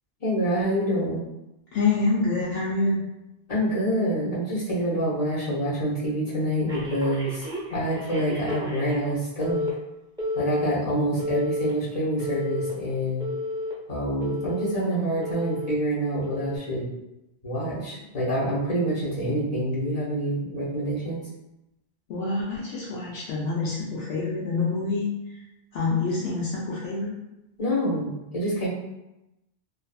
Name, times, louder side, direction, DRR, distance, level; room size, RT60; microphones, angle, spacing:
voice 1, 0.2-1.2 3.5-9.6 10.3-13.3 13.9-16.9 17.4-21.2 27.6-28.7, right 1 dB, 40° left, -8 dB, 0.7 m, -26 dB
voice 2, 1.7-3.0 22.1-25.4 25.7-27.2, left 3 dB, 75° left, -7 dB, 0.8 m, -26 dB
Telephone, 6.7-9.1 9.4-9.7 10.2-10.7 11.2-11.7 12.2-12.7 13.2-13.7 14.2-14.7 15.2-15.7 16.2-16.6, left 1 dB, 5° right, 0.4 m, -31 dB
2.5 x 2.3 x 2.3 m, 0.93 s
omnidirectional pair, 1.1 m